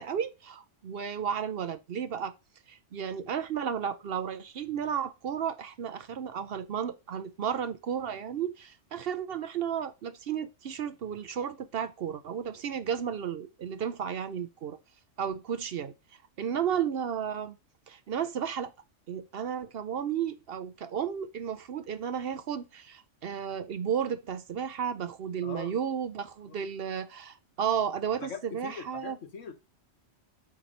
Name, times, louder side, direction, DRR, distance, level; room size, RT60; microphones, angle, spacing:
voice 1, 0.0-2.3 2.7-14.8 15.2-15.9 16.4-17.6 17.9-18.7 19.1-29.2, right 8 dB, 60° right, 0.8 m, -33 dB
voice 2, 28.2-29.5, left 6 dB, 80° left, 1.4 m, -42 dB
8.4 x 3.0 x 5.2 m
omnidirectional pair, 1.3 m